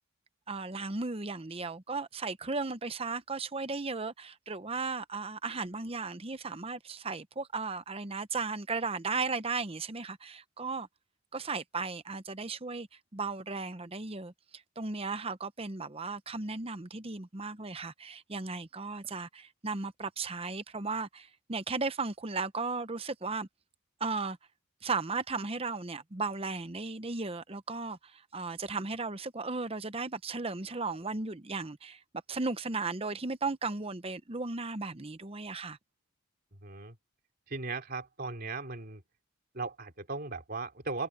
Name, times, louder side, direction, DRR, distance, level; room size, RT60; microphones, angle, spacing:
voice 1, 0.5-10.9 11.3-12.9 13.1-14.3 14.8-23.5 24.0-24.4 24.8-32.0 32.3-35.8, right 4 dB, 25° right, 0.8 m, -35 dB
voice 2, 36.5-37.0 37.5-39.0 39.5-41.1, right 3 dB, 45° right, 3.2 m, -37 dB
head